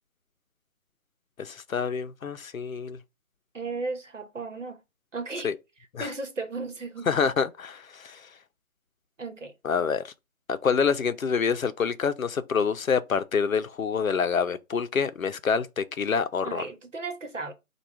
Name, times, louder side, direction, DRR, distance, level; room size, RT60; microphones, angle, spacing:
voice 1, 1.4-3.0 5.4-5.5 5.9-6.1 7.1-8.2 9.6-10.1 10.5-16.7, left 6 dB, 75° left, 0.6 m, -27 dB
voice 2, 3.5-4.8 5.1-5.5 6.0-7.1 9.2-9.5 16.4-17.5, right 3 dB, 60° right, 1.0 m, -35 dB
4.4 x 2.3 x 4.7 m
figure-of-eight pair, 175°, 41 cm